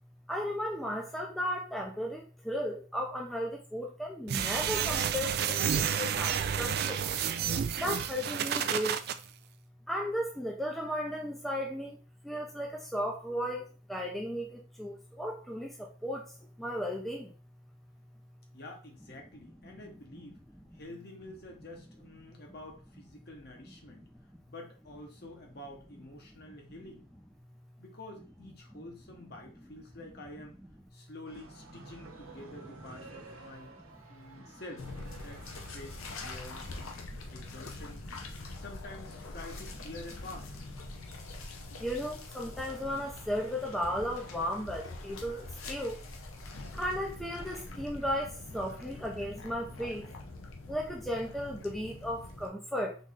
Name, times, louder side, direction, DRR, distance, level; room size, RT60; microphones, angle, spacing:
voice 1, 0.3-7.0 7.8-9.0 9.9-12.0 12.2-17.3 26.4-26.5 41.8-46.0 46.7-50.1 50.7-53.0, equal, ahead, -1 dB, 0.5 m, -35 dB
sound 1, 4.3-9.1, right 8 dB, 50° right, 0.3 m, -30 dB
voice 2, 18.5-20.4 20.7-24.1 24.5-27.1 27.8-30.6 30.9-33.7 34.1-36.9 37.3-38.1 38.5-40.5, left 1 dB, 50° left, 1 dB, 1.2 m, -48 dB
sound 2, 31.3-36.9, right 3 dB, 90° right, 1.0 m, -52 dB
sound 3, 34.8-52.5, left 2 dB, 90° left, 0.8 m, -44 dB
4.0 x 3.2 x 3.7 m, 0.36 s
head